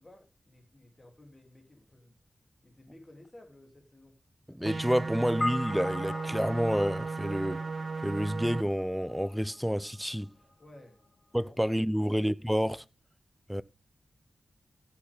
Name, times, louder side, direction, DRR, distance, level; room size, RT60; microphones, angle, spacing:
voice 1, 0.0-2.2 2.6-4.2 10.6-11.0 11.4-11.5 11.9-12.2, left 1 dB, 30° left, 3.0 m, -55 dB
voice 2, 4.5-7.6 8.0-10.3 11.3-12.8 13.5-13.6, equal, ahead, 0.6 m, -29 dB
sound 1, 4.6-8.6, right 4 dB, 55° right, 0.8 m, -35 dB
sound 2, 5.4-10.0, left 2 dB, 50° left, 2.5 m, -39 dB
15.5 x 7.2 x 3.6 m
wide cardioid pair, 80°, 0 cm